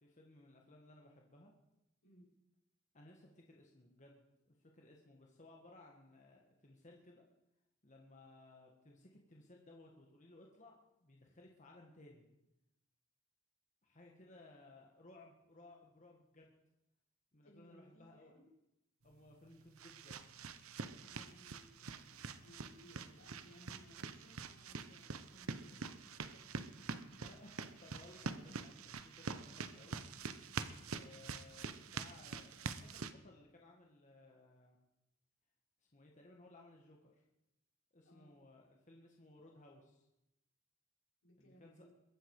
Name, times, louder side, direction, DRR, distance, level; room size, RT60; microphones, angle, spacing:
voice 1, 0.0-1.5 2.9-7.2 7.8-12.3 13.8-16.5 17.3-18.5 19.0-20.3 27.2-30.0 30.9-34.8 35.8-37.2 37.9-40.1 41.4-41.9, left 2 dB, 35° left, 0 dB, 1.8 m, -61 dB
voice 2, 2.0-2.4 14.2-14.3 17.4-18.5 20.9-26.7 38.0-38.4 41.2-41.9, equal, 80° left, -3 dB, 5.4 m, -64 dB
sound 1, 19.1-33.1, right 4 dB, 90° right, 0.9 m, -46 dB
22.0 x 9.9 x 4.9 m, 0.90 s
head